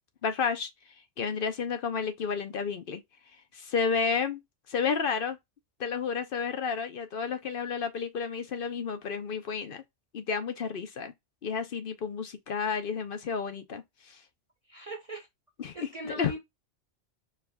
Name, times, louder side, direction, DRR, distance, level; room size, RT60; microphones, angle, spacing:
voice 1, 0.2-0.7 1.2-3.0 3.5-4.4 4.7-5.4 5.8-9.8 10.1-11.1 11.4-14.2 15.6-16.4, left 6 dB, 55° left, 0.8 m, -31 dB
voice 2, 14.7-15.3 15.7-16.4, right 2 dB, 35° right, 0.7 m, -40 dB
4.6 x 2.3 x 3.4 m
omnidirectional pair, 1.2 m